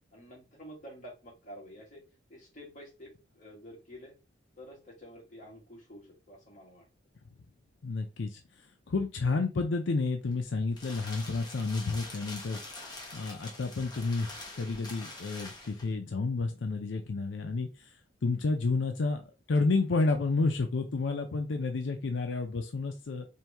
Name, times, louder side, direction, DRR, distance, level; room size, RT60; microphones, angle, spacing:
voice 1, 0.0-2.0 2.3-4.1 4.6-6.9, equal, 45° left, -2 dB, 1.8 m, -49 dB
voice 2, 7.8-12.6 13.1-17.9 18.2-19.2 19.5-23.3, left 3 dB, 85° left, 5 dB, 0.5 m, -30 dB
sound 1, 10.3-16.0, left 2 dB, 20° left, 1.1 m, -45 dB
4.5 x 2.7 x 3.4 m, 0.28 s
head